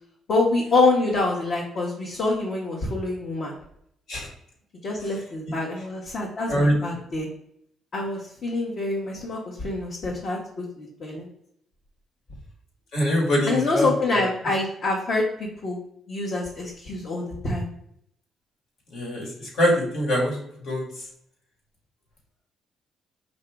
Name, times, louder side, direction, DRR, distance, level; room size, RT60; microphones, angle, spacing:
voice 1, 0.3-3.5 4.8-7.3 7.9-11.3 13.5-15.2 15.6-15.8 16.1-17.7, left 2 dB, 55° left, -4 dB, 1.1 m, -26 dB
voice 2, 12.9-14.2 18.9-20.4 20.7-20.9, equal, 75° left, -2 dB, 1.7 m, -23 dB
5.0 x 2.7 x 3.4 m, 0.72 s
cardioid pair, 90°, 0 cm